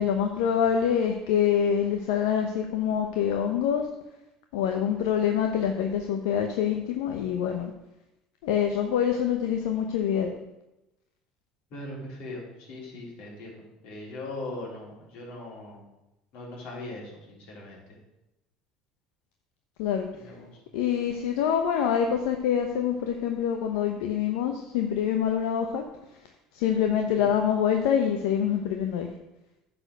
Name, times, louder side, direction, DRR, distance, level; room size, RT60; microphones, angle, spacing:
voice 1, 0.0-3.9 4.5-7.7 8.4-10.3 19.8-20.1 20.7-25.8 26.5-29.1, left 8 dB, 85° left, 4 dB, 0.8 m, -25 dB
voice 2, 11.7-15.8 16.3-17.8 20.2-20.6 27.1-27.3, left 2 dB, 65° left, -3 dB, 3.6 m, -40 dB
9.7 x 4.4 x 6.6 m, 0.93 s
supercardioid pair, 100°, 2 cm